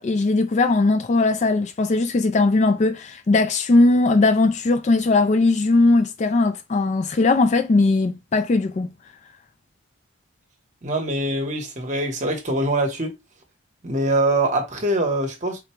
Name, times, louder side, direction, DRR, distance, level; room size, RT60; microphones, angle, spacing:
voice 1, 0.0-8.9, left 3 dB, 35° left, 0.3 m, -19 dB
voice 2, 10.8-13.2 13.8-15.6, right 1 dB, 35° right, 1.0 m, -23 dB
3.9 x 2.2 x 4.4 m
head